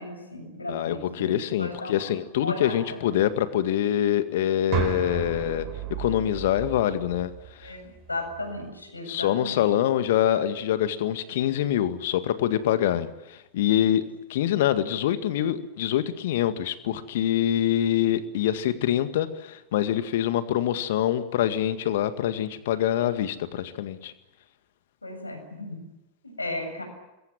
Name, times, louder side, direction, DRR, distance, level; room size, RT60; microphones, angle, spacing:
voice 1, 0.0-1.3 1.6-2.1 2.4-3.0 5.1-5.2 7.6-7.8 8.1-9.6 25.0-25.8 26.2-26.8, left 2 dB, 80° left, 5 dB, 7.3 m, -35 dB
voice 2, 0.7-5.7 6.0-7.3 7.6-7.7 9.1-24.1, left 11 dB, 55° left, 11 dB, 2.0 m, -25 dB
sound 1, 4.7-8.7, right 9 dB, 40° right, 5.1 m, -34 dB
26.5 x 22.5 x 7.5 m, 0.99 s
figure-of-eight pair, 90°, 0 cm